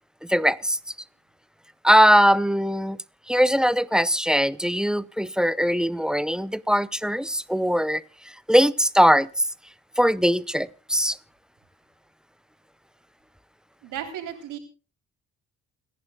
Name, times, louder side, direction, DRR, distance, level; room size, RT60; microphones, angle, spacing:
voice 1, 0.2-0.8 1.8-3.0 3.3-8.0 8.5-9.3 10.0-11.2, equal, ahead, 0.6 m, -20 dB
voice 2, 13.8-14.6, right 10 dB, 85° right, 3.7 m, -34 dB
29.0 x 11.0 x 2.4 m
cardioid pair, 90°, 30 cm